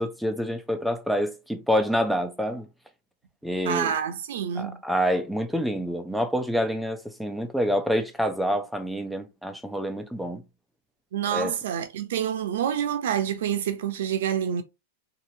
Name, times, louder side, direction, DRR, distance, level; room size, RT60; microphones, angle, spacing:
voice 1, 0.0-2.7 3.4-3.9 4.6-10.4 11.3-11.5, equal, ahead, 0.5 m, -27 dB
voice 2, 3.6-4.8 11.1-14.6, right 9 dB, 75° right, 0.6 m, -27 dB
2.8 x 2.7 x 2.7 m
hypercardioid pair, 120°, 0 cm